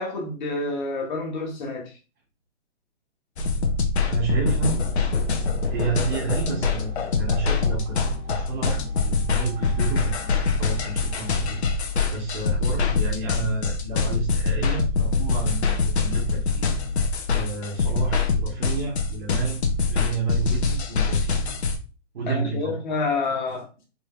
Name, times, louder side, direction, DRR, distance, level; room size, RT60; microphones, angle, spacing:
voice 1, 0.0-1.9 22.3-23.7, left 3 dB, 40° left, 1.3 m, -28 dB
sound 1, 3.4-21.8, left 4 dB, 60° left, 0.8 m, -24 dB
voice 2, 4.1-4.8 5.7-8.0 8.3-10.1 10.6-11.6 12.1-16.6 17.3-21.3 22.1-22.8, right 4 dB, 50° right, 1.4 m, -30 dB
sound 2, 4.1-11.6, right 1 dB, 75° right, 1.3 m, -45 dB
sound 3, 6.2-17.4, left 9 dB, 10° left, 0.9 m, -38 dB
4.1 x 3.2 x 2.4 m
hypercardioid pair, 160°, 37 cm